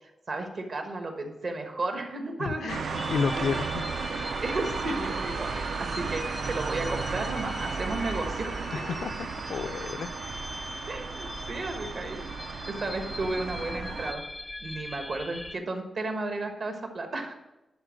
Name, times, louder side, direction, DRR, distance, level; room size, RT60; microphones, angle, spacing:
voice 1, 0.0-3.1 3.5-3.7 4.4-8.7 10.9-12.3 12.7-14.2 14.6-17.3, right 2 dB, 55° right, 4 dB, 1.3 m, -34 dB
voice 2, 2.4-3.8 8.7-10.1, left 6 dB, 80° left, 13 dB, 0.4 m, -31 dB
sound 1, 2.7-14.1, right 5 dB, 75° right, 0.6 m, -34 dB
sound 2, 2.9-15.6, left 2 dB, 15° left, 0.5 m, -41 dB
11.0 x 4.4 x 6.2 m, 0.98 s
wide cardioid pair, 150°, 0 cm